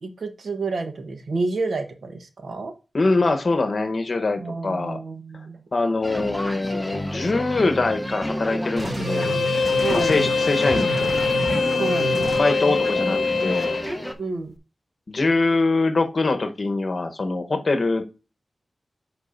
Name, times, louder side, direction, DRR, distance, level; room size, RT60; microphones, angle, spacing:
voice 1, 0.0-2.7 4.4-5.6 9.8-10.2 11.7-12.1 14.2-14.5, right 3 dB, 75° right, 1.1 m, -29 dB
voice 2, 2.9-5.0 5.7-9.4 9.9-11.2 12.3-13.8 15.1-18.0, left 3 dB, 50° left, 1.0 m, -23 dB
sound 1, 6.0-14.1, equal, 5° left, 0.8 m, -31 dB
sound 2, 8.8-12.4, right 3 dB, 40° right, 1.7 m, -31 dB
Bowed string instrument, 9.1-13.9, left 5 dB, 80° left, 0.7 m, -23 dB
8.3 x 5.1 x 2.6 m
wide cardioid pair, 105°, 0 cm